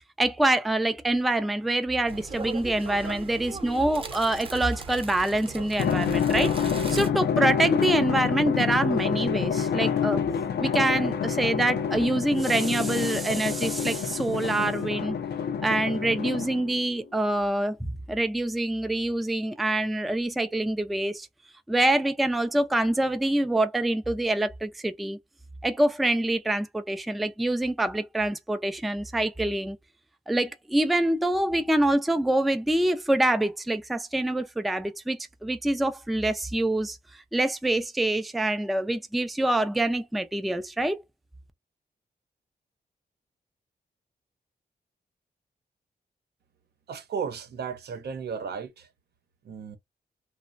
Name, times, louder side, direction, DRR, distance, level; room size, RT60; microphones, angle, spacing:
voice 1, 0.2-10.2 10.6-15.2 15.6-17.8 18.1-21.3 21.7-25.2 25.6-29.8 30.3-37.0 37.3-41.0, right 1 dB, ahead, 0.3 m, -25 dB
sound 1, 2.1-7.1, right 3 dB, 35° right, 0.7 m, -38 dB
Drum, 5.8-16.8, left 7 dB, 80° left, 0.5 m, -27 dB
voice 2, 46.9-48.9 49.4-49.8, right 6 dB, 80° right, 0.7 m, -34 dB
3.1 x 2.0 x 2.5 m
wide cardioid pair, 130°, 17 cm